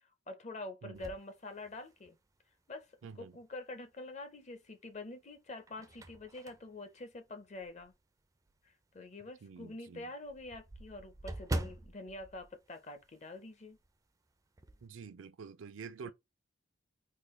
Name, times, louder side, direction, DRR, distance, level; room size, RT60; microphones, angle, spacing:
voice 1, 0.3-2.2 2.7-2.9 3.2-7.9 8.6-13.8 16.0-16.1, left 2 dB, 35° left, 0.6 m, -46 dB
sound 1, 0.9-2.3 2.8-2.9 4.4-4.9 5.4-8.0 8.5-8.6 9.0-9.1 9.4-9.5 9.7-13.5 13.7-14.0 14.3-14.9, right 1 dB, 15° right, 0.3 m, -43 dB
voice 2, 3.0-3.3 9.2-10.1 14.8-16.1, right 5 dB, 80° right, 0.4 m, -48 dB
3.7 x 2.3 x 3.1 m
head